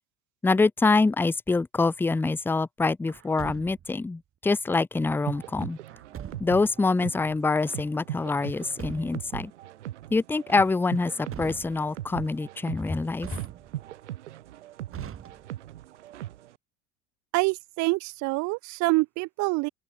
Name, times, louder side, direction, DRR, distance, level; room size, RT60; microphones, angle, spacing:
voice 1, 0.4-5.8 6.4-9.5 10.1-13.3, left 3 dB, 5° left, 0.5 m, -25 dB
Truck, 3.1-4.0 5.9-6.7 8.4-9.4 11.0-12.0 13.2-14.0 14.9-15.8, right 9 dB, 40° right, 7.2 m, -42 dB
sound 1, 5.3-16.5, right 13 dB, 75° right, 2.9 m, -40 dB
voice 2, 17.3-19.7, right 25 dB, 55° right, 1.0 m, -26 dB
open air
hypercardioid pair, 75°, 35 cm